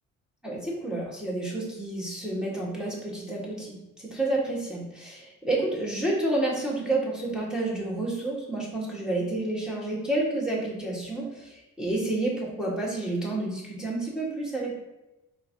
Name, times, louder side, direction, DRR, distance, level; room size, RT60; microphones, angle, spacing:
voice 1, 0.4-14.7, right 2 dB, ahead, -4 dB, 1.4 m, -30 dB
4.4 x 3.6 x 2.7 m, 0.96 s
cardioid pair, 90°, 30 cm